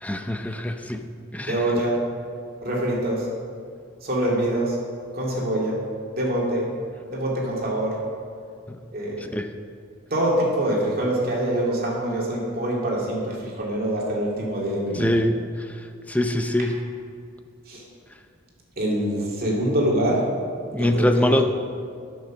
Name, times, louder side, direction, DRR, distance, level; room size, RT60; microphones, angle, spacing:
voice 1, 0.0-1.1 1.3-1.7 8.7-8.8 9.2-9.5 14.9-16.8 20.7-21.5, left 1 dB, 5° left, 6 dB, 0.5 m, -24 dB
voice 2, 1.5-2.0 2.6-3.3 4.0-4.8 5.1-5.8 6.1-6.7 7.1-8.0 8.9-9.3 10.1-15.2 17.7-17.8 18.8-20.3 20.7-21.4, right 1 dB, 50° right, -3 dB, 2.4 m, -25 dB
11.0 x 6.8 x 6.2 m, 2.3 s
head